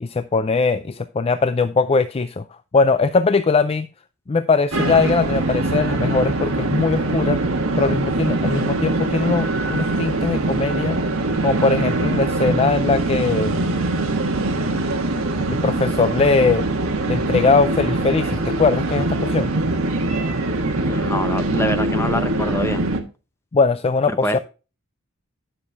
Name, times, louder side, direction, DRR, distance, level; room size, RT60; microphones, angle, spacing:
voice 1, 0.0-2.4 2.7-3.9 4.3-11.0 11.4-13.6 15.5-16.7 17.1-19.5 23.5-24.4, left 4 dB, 30° left, 0.4 m, -20 dB
sound 1, 4.7-23.0, right 2 dB, 75° right, 1.5 m, -22 dB
voice 2, 20.9-22.8 24.2-24.4, left 1 dB, 10° left, 0.8 m, -25 dB
10.5 x 6.8 x 3.5 m
head